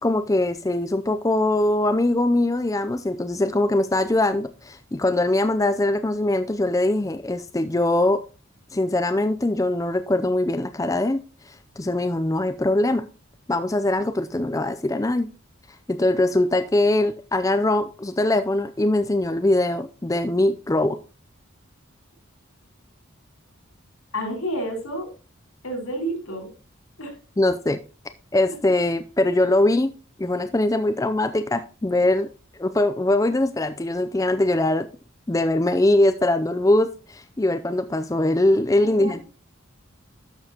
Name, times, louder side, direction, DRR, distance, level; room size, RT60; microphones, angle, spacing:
voice 1, 0.0-8.2 8.7-13.1 13.5-15.3 15.9-21.0 27.4-27.8 28.3-29.9 30.2-32.3 32.6-34.9 35.3-39.2, left 1 dB, 15° left, 0.4 m, -22 dB
voice 2, 24.1-25.1 25.6-26.5 27.0-27.1 38.8-39.2, right 1 dB, 85° left, 5.0 m, -30 dB
12.0 x 7.0 x 2.9 m
head